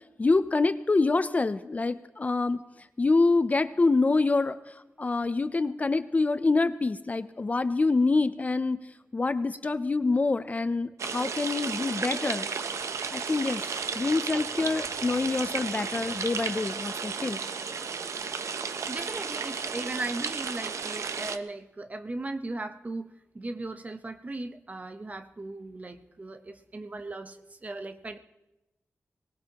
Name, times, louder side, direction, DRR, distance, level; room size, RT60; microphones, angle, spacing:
voice 1, 0.2-2.6 3.0-8.9 9.1-12.5 13.1-13.7 13.9-17.4, left 3 dB, 30° left, 13 dB, 0.4 m, -26 dB
sound 1, 11.0-21.4, right 5 dB, 90° right, 0.6 m, -33 dB
voice 2, 18.9-28.2, right 2 dB, 30° right, 8 dB, 0.8 m, -37 dB
24.0 x 19.0 x 2.9 m, 0.98 s
wide cardioid pair, 145°, 5 cm